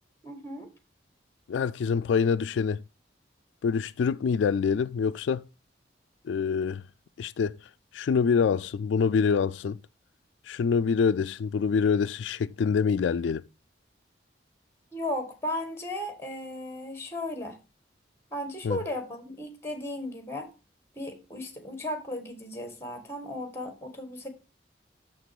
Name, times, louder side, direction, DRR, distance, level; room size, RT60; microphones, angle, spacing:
voice 1, 0.2-0.7 14.9-17.6 18.3-20.5 20.9-24.3, left 1 dB, 15° left, 1.6 m, -35 dB
voice 2, 1.5-2.8 3.6-5.4 6.3-6.8 7.2-7.6 7.9-9.8 10.5-13.4 18.6-18.8, left 6 dB, 80° left, 0.3 m, -25 dB
6.8 x 6.0 x 4.7 m
head